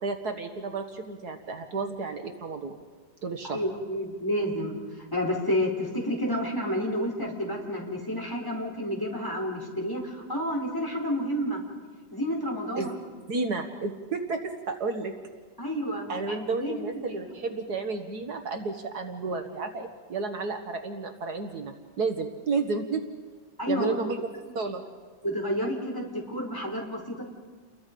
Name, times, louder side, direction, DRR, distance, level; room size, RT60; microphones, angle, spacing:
voice 1, 0.0-2.8 3.2-3.6 12.8-12.9 13.3-15.1 16.1-23.0 23.7-24.8, right 4 dB, 65° right, 6 dB, 2.0 m, -32 dB
voice 2, 3.4-11.6 12.1-13.0 15.6-17.2 23.6-24.0 25.2-27.2, equal, 10° left, -1 dB, 4.2 m, -30 dB
30.0 x 22.5 x 5.3 m, 1.5 s
omnidirectional pair, 1.9 m